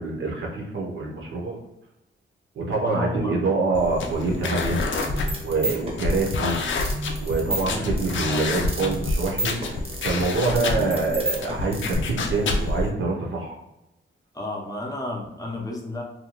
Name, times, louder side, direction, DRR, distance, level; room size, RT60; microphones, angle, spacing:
voice 1, 0.0-1.6 2.5-4.8 5.4-6.6 7.2-9.5 10.0-13.6, right 3 dB, 65° right, -1 dB, 0.7 m, -25 dB
voice 2, 2.8-3.4 7.6-8.0 8.2-8.7 14.3-16.0, left 2 dB, 15° left, -1 dB, 0.5 m, -32 dB
sound 1, 3.7-12.9, left 3 dB, 65° left, 0.4 m, -28 dB
sound 2, 4.5-12.0, right 1 dB, 30° right, 0.7 m, -32 dB
2.7 x 2.2 x 2.9 m, 0.90 s
wide cardioid pair, 115°, 21 cm